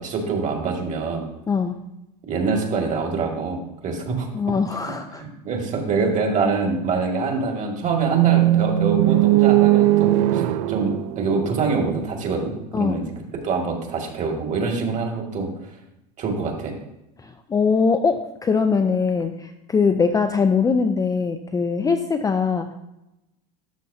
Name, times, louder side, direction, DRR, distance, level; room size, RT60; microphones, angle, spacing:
voice 1, 0.0-1.3 2.3-4.3 5.2-10.4 10.7-13.1 13.4-15.5 16.2-16.8, right 4 dB, 35° right, 1 dB, 2.1 m, -25 dB
voice 2, 4.3-5.2 12.7-13.0 17.2-22.7, left 5 dB, 15° left, 7 dB, 0.5 m, -21 dB
sound 1, 7.8-12.0, right 16 dB, 75° right, 0.6 m, -18 dB
12.5 x 6.3 x 2.8 m, 0.90 s
supercardioid pair, 115°, 21 cm